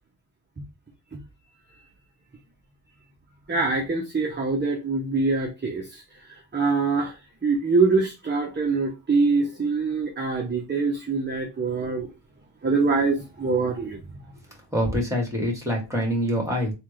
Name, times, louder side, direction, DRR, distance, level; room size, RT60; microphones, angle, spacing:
voice 1, 3.5-12.1 12.6-14.0, right 4 dB, 20° right, 1 dB, 0.8 m, -24 dB
voice 2, 14.7-16.7, equal, 5° right, 1 dB, 2.0 m, -25 dB
3.4 x 2.5 x 3.1 m, 0.26 s
cardioid pair, 60°, 48 cm